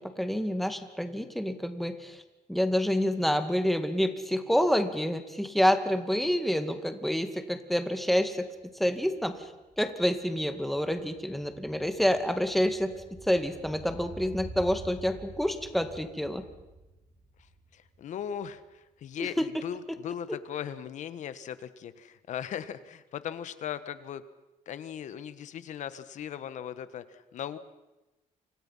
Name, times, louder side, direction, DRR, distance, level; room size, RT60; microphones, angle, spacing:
voice 1, 0.2-2.2 2.5-8.5 8.8-12.9 13.2-16.4 19.2-19.5, equal, ahead, 7 dB, 2.1 m, -28 dB
sound 1, 8.0-8.1 8.4-18.7 19.0-19.1, right 2 dB, 30° right, 3.8 m, -49 dB
voice 2, 17.7-24.2 24.7-27.6, left 9 dB, 65° left, 12 dB, 1.6 m, -38 dB
29.0 x 25.5 x 5.8 m, 1.0 s
cardioid pair, 130°, 13 cm